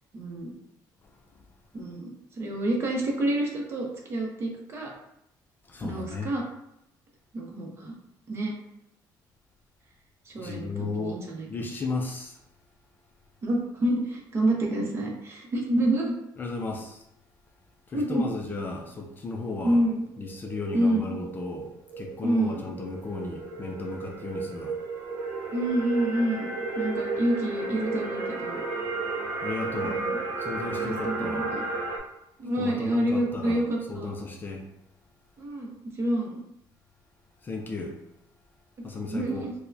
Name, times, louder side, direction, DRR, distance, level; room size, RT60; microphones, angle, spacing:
voice 1, 0.1-0.5 1.7-4.9 5.8-6.4 7.3-8.0 8.3-8.5 10.3-11.5 13.4-16.2 17.9-18.2 19.6-20.0 20.7-21.1 22.2-22.6 25.5-26.5 26.8-28.6 29.8-30.2 30.7-31.6 32.4-34.1 35.4-36.4 39.1-39.5, right 1 dB, 30° right, 0 dB, 0.7 m, -28 dB
voice 2, 1.0-1.4 5.6-6.3 10.4-12.4 16.4-17.0 17.9-19.8 20.2-24.8 29.4-30.0 30.4-31.5 32.6-34.7 37.4-38.0 38.8-39.4, left 3 dB, 25° left, 1 dB, 0.3 m, -35 dB
sound 1, 19.9-32.0, right 3 dB, 70° right, 0.8 m, -33 dB
4.5 x 2.1 x 2.6 m, 0.79 s
cardioid pair, 160°, 8 cm